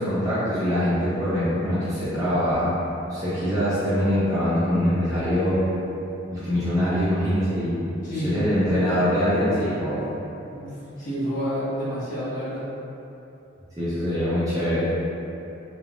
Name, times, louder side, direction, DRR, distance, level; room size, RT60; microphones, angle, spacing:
voice 1, 0.0-2.7 3.1-5.7 6.3-7.8 8.2-10.0 13.8-14.9, equal, 15° right, -12 dB, 0.7 m, -23 dB
voice 2, 8.0-8.5 10.4-12.6, equal, 40° left, -13 dB, 1.4 m, -29 dB
3.6 x 3.4 x 2.4 m, 2.9 s
head